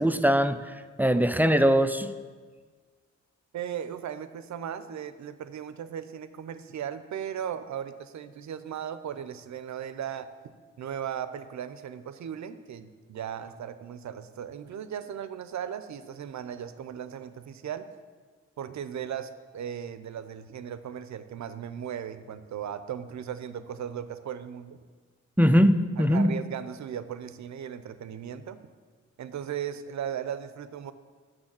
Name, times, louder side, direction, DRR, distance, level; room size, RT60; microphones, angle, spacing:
voice 1, 0.0-2.1 25.4-26.3, equal, 5° right, 10 dB, 0.4 m, -22 dB
voice 2, 3.5-10.3 10.8-17.9 18.6-24.8 26.0-28.6 29.2-30.9, right 9 dB, 70° right, 12 dB, 0.6 m, -37 dB
6.5 x 6.2 x 7.4 m, 1.5 s
cardioid pair, 60°, 29 cm